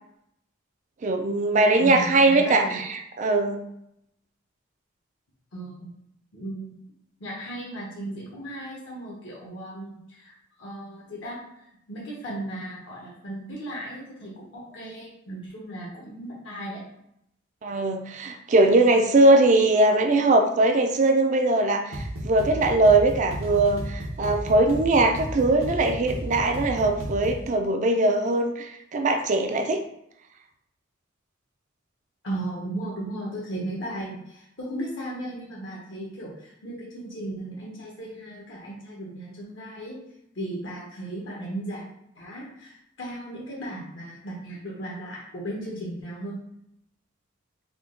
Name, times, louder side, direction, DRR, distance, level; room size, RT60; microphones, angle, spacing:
voice 1, 1.0-3.6 17.6-29.8, right 2 dB, 40° right, 5 dB, 0.4 m, -21 dB
voice 2, 1.8-2.8 5.5-5.9 6.3-6.8 7.2-16.8 32.2-40.0 40.3-41.8 42.1-46.4, right 1 dB, 65° left, -4 dB, 0.8 m, -36 dB
sound 1, 21.9-27.5, right 1 dB, 80° right, 0.7 m, -33 dB
3.6 x 2.2 x 3.7 m, 0.78 s
head